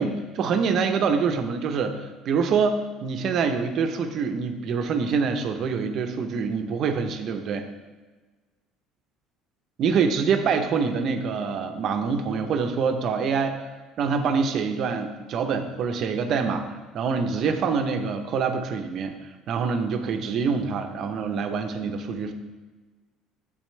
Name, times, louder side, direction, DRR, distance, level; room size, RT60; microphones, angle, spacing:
voice 1, 0.0-7.6 9.8-13.7 14.0-19.2 19.5-22.3, right 5 dB, 50° right, 7 dB, 0.8 m, -25 dB
9.0 x 8.3 x 3.3 m, 1.3 s
cardioid pair, 120°, 0 cm